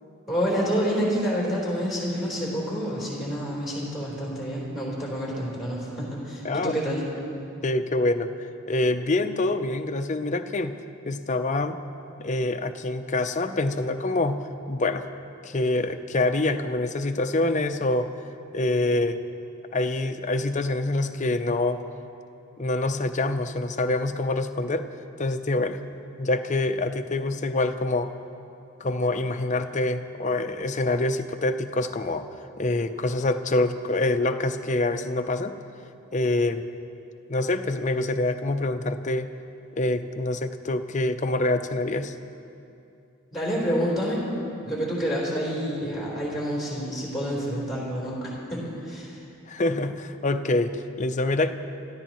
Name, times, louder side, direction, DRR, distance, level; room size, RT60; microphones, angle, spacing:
voice 1, 0.3-7.0 43.3-49.2, equal, ahead, -6 dB, 3.9 m, -28 dB
voice 2, 6.4-6.8 7.6-8.3 8.7-10.8 11.1-11.8 12.2-15.1 15.4-18.1 18.5-19.2 19.7-21.8 22.6-24.9 25.2-25.8 26.2-28.1 28.8-32.3 32.6-35.5 36.1-36.6 37.3-39.3 39.7-42.1 49.5-51.5, left 2 dB, 35° left, 8 dB, 0.6 m, -26 dB
27.0 x 14.5 x 3.1 m, 2.6 s
head